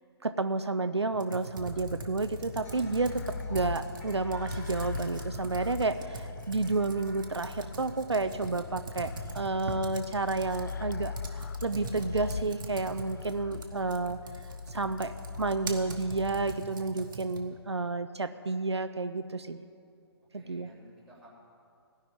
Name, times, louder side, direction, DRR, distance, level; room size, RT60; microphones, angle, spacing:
voice 1, 0.2-14.2 14.7-19.6 20.3-20.7, right 3 dB, 80° right, 10 dB, 0.6 m, -31 dB
Computer keyboard, 1.1-17.6, right 3 dB, 50° right, 1.3 m, -43 dB
sound 1, 1.6-16.6, left 5 dB, 45° left, 0.4 m, -41 dB
sound 2, 2.6-8.7, left 2 dB, 15° left, 1.9 m, -54 dB
voice 2, 20.3-21.3, equal, 5° right, -5 dB, 3.0 m, -56 dB
16.5 x 5.7 x 10.0 m, 2.4 s
figure-of-eight pair, 140°, 14 cm